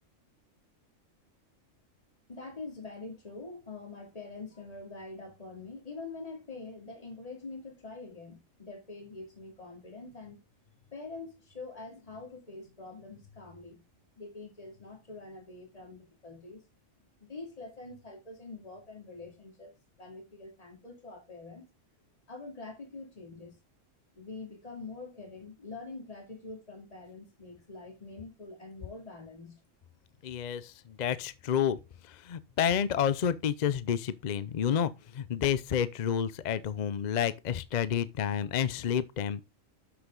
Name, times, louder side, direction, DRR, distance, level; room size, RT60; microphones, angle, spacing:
voice 1, 2.3-10.4 10.9-13.8 14.2-16.6 17.2-21.7 22.3-23.6 24.2-29.6, left 3 dB, 30° left, 2.6 m, -45 dB
voice 2, 30.2-39.4, left 8 dB, 50° left, 0.5 m, -30 dB
7.4 x 6.6 x 3.8 m
omnidirectional pair, 1.4 m